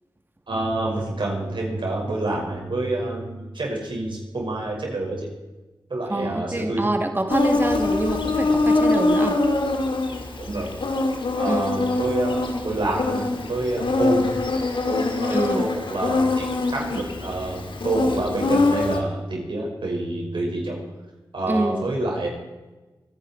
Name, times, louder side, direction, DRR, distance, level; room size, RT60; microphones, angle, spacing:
voice 1, 0.5-5.3 5.9-6.8 10.4-10.7 11.4-14.3 14.9-20.8 21.3-22.3, right 2 dB, 70° right, -1 dB, 5.6 m, -27 dB
voice 2, 6.1-9.4 11.5-11.6 15.3-15.7 21.5-21.9, right 2 dB, 25° right, 5 dB, 2.0 m, -25 dB
Insect, 7.3-19.0, left 2 dB, 80° left, 1.9 m, -23 dB
25.5 x 10.0 x 4.5 m, 1.2 s
cardioid pair, 45°, 9 cm